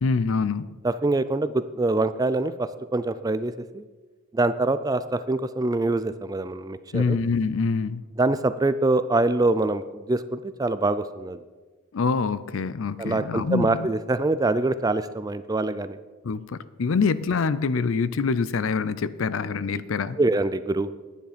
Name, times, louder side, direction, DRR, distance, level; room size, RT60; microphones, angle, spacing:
voice 1, 0.0-0.8 6.9-8.0 11.9-13.9 16.2-20.2, left 4 dB, 65° left, 16 dB, 0.5 m, -25 dB
voice 2, 0.8-3.8 4.3-7.2 8.2-11.4 13.0-16.0 20.2-20.9, right 2 dB, 15° right, 13 dB, 0.3 m, -24 dB
10.5 x 9.6 x 5.1 m, 1.3 s
head